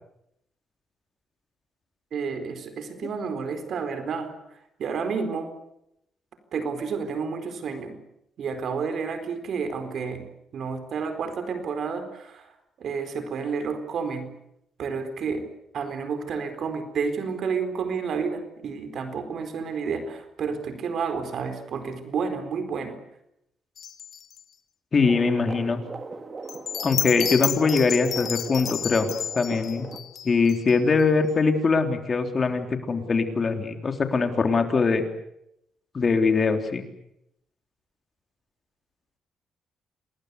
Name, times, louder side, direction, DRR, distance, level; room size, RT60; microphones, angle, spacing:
voice 1, 2.1-4.4 4.8-5.6 6.5-8.0 8.4-10.2 10.5-12.5 12.8-14.3 14.8-23.0, right 5 dB, 60° right, 8 dB, 4.3 m, -30 dB
sound 1, 23.8-24.4 26.5-31.0, left 8 dB, 60° left, 2.1 m, -31 dB
voice 2, 24.9-25.8 26.8-29.1 29.4-29.9 30.2-35.0 35.9-36.8, left 4 dB, 35° left, 6 dB, 3.5 m, -22 dB
sound 2, 25.0-30.0, right 3 dB, 35° right, 2.6 m, -39 dB
28.0 x 20.5 x 8.3 m, 0.80 s
cardioid pair, 90°, 0 cm